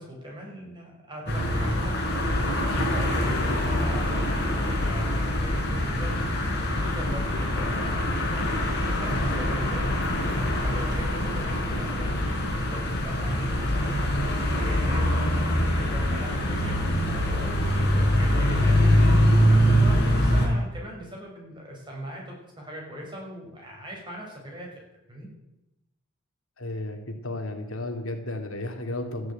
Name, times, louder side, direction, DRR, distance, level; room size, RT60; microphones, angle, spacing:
voice 1, 0.0-6.2 6.7-8.7 9.0-12.1 12.7-18.9 19.3-24.7 25.1-25.3, equal, 20° right, -2 dB, 6.2 m, -40 dB
sound 1, 1.3-20.5, equal, 50° left, 4.7 m, -24 dB
voice 2, 26.6-29.3, left 2 dB, 75° left, 5 dB, 2.4 m, -33 dB
14.0 x 11.0 x 8.9 m, 0.92 s
head